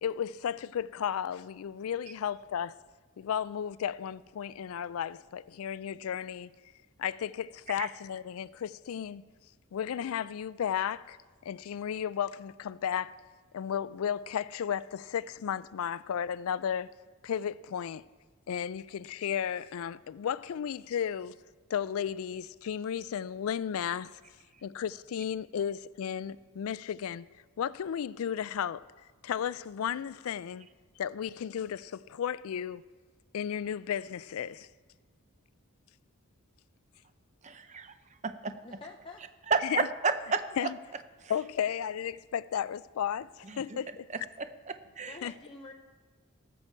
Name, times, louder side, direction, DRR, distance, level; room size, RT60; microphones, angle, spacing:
voice 1, 0.0-2.8 3.2-6.5 7.0-9.3 9.7-11.2 11.4-13.2 13.5-16.9 17.2-18.0 18.5-21.3 21.7-24.2 24.6-27.3 27.6-28.8 29.2-30.7 31.0-32.8 33.3-34.7 39.7-39.9 40.6-40.8 41.3-44.0 45.2-45.3, left 8 dB, 70° left, 0.3 m, -34 dB
voice 2, 37.4-37.9 38.2-38.6 39.5-40.7 41.2-41.3 43.4-43.8 44.1-45.2, right 5 dB, 30° right, 0.6 m, -32 dB
voice 3, 38.6-39.2 45.1-45.7, left 3 dB, 20° left, 0.6 m, -47 dB
18.5 x 7.4 x 4.5 m
head